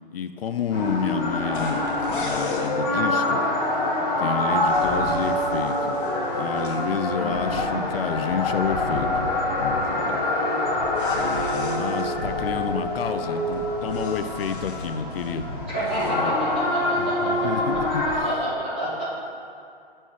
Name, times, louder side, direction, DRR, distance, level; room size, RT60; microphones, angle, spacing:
voice 1, 0.1-1.8 2.2-3.4 4.2-6.0 6.3-9.3 9.6-10.2 11.1-15.5 15.9-16.3 17.0-18.3, left 6 dB, 70° left, 9 dB, 0.5 m, -30 dB
sound 1, 0.7-18.2, left 1 dB, 25° left, 1.3 m, -25 dB
sound 2, 1.5-2.7 4.4-6.8 10.9-12.1 13.5-15.4 15.7-16.2, left 3 dB, 55° left, 0.9 m, -38 dB
voice 2, 7.1-7.9 15.7-18.0 18.2-19.0, equal, 10° right, -9 dB, 0.5 m, -29 dB
5.5 x 4.3 x 4.6 m, 2.4 s
hypercardioid pair, 165°, 30 cm